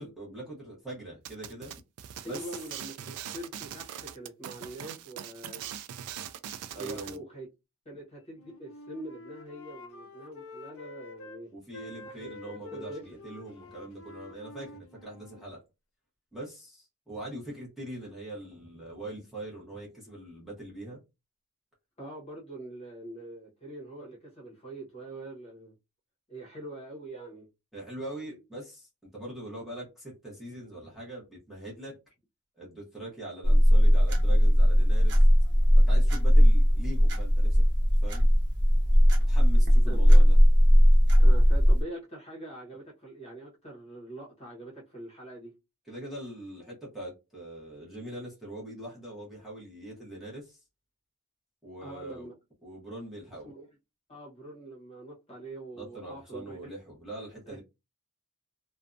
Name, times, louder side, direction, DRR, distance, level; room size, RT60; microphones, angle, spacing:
voice 1, 0.0-1.7 2.2-2.5 6.7-7.2 11.5-15.6 16.3-21.0 27.7-32.0 32.6-35.3 35.8-37.6 38.0-38.3 39.3-40.4 45.9-50.6 51.6-52.3 52.6-53.5 55.7-57.6, right 1 dB, ahead, 0.9 m, -42 dB
sound 1, 1.3-7.2, right 10 dB, 85° right, 0.3 m, -41 dB
voice 2, 2.2-5.6 6.7-7.5 7.8-11.5 12.1-12.3 12.7-13.2 22.0-25.7 26.3-27.5 39.9-40.0 41.2-45.5 51.8-52.3 53.4-53.7 54.1-56.6 57.5-57.6, right 1 dB, 30° left, 1.0 m, -43 dB
Wind instrument woodwind instrument, 8.3-11.4 11.7-15.5, left 3 dB, 65° left, 0.5 m, -48 dB
sound 2, 33.4-41.8, equal, 50° right, 0.9 m, -19 dB
2.6 x 2.2 x 2.5 m
head